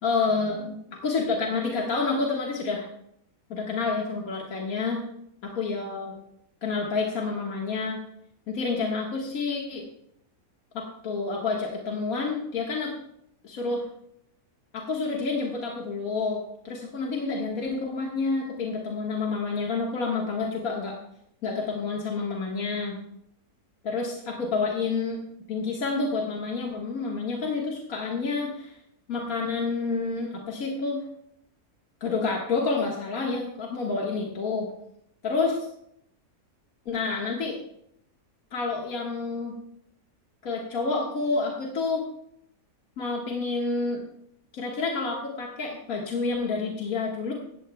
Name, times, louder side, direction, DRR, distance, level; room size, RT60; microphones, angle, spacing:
voice 1, 0.0-0.8 1.0-2.9 3.5-5.0 5.6-6.1 6.6-8.0 8.5-9.9 10.7-12.9 13.4-13.8 14.7-20.9 21.4-23.0 23.8-25.2 25.5-28.7 29.1-31.0 32.0-34.7 35.2-35.6 36.9-37.6 38.5-39.6 40.4-42.0 43.0-44.0 44.5-47.3, left 4 dB, 70° left, -2 dB, 2.1 m, -29 dB
17.0 x 14.5 x 2.3 m, 0.74 s
omnidirectional pair, 1.6 m